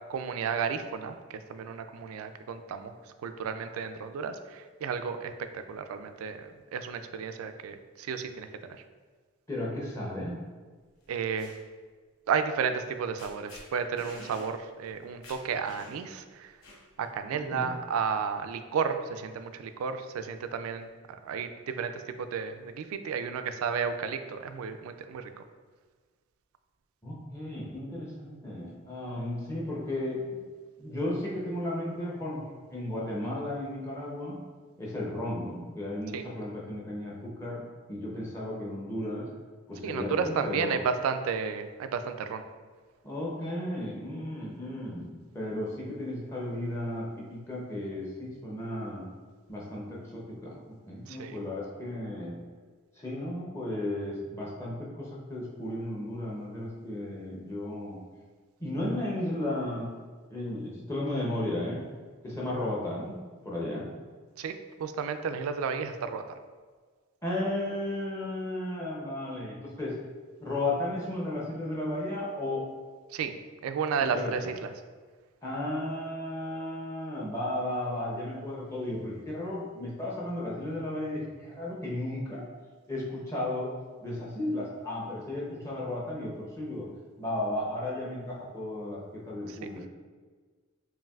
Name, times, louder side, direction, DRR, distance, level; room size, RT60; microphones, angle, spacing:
voice 1, 0.1-2.9 3.2-8.8 11.1-11.5 12.3-16.5 17.0-20.9 21.2-25.3 36.1-36.2 39.8-42.4 51.1-51.4 64.4-66.2 73.1-73.4 73.6-74.7 89.5-89.6, right 6 dB, 80° right, 9 dB, 0.3 m, -32 dB
voice 2, 9.5-10.4 17.3-17.7 27.0-30.4 30.8-34.4 34.8-39.3 39.7-40.8 43.0-49.1 49.5-52.4 53.0-58.0 58.6-59.9 60.3-61.8 62.2-63.9 67.2-70.0 70.4-72.6 74.1-74.5 75.4-82.5 82.9-83.7 84.0-86.9 87.2-89.9, left 1 dB, 15° left, -5 dB, 0.6 m, -34 dB
sound 1, 11.0-11.6 12.8-12.9 13.2-13.6 14.0-14.5 14.9-15.0 15.2-16.1 16.6-17.1, left 2 dB, 80° left, 0.8 m, -48 dB
5.4 x 2.6 x 2.3 m, 1.5 s
head